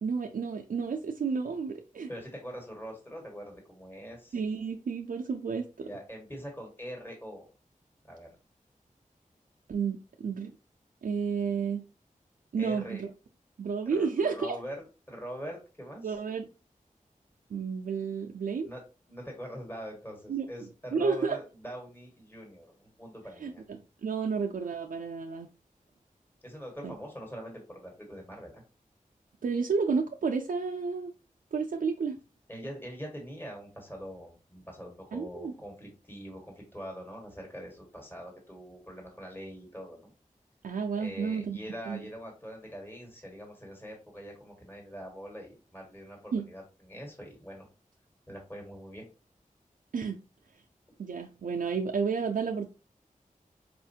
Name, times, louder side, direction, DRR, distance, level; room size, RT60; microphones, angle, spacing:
voice 1, 0.0-2.1 4.3-5.9 9.7-10.5 11.0-11.8 12.5-13.1 13.6-14.6 16.0-16.5 17.5-18.7 20.3-20.5 20.9-21.4 23.4-25.5 26.8-27.0 29.4-31.1 31.5-32.2 35.1-35.5 40.6-41.6 41.9-42.0 46.3-46.5 49.9-50.2 51.0-52.7, right 5 dB, 75° right, 0.4 m, -31 dB
voice 2, 2.1-4.4 5.8-7.5 8.0-8.3 12.6-13.0 13.8-16.2 18.6-18.8 19.1-23.6 26.4-28.6 32.5-40.1 41.0-47.7 48.3-49.1, equal, 15° left, 1.4 m, -43 dB
4.4 x 2.4 x 2.6 m
wide cardioid pair, 60°, 14 cm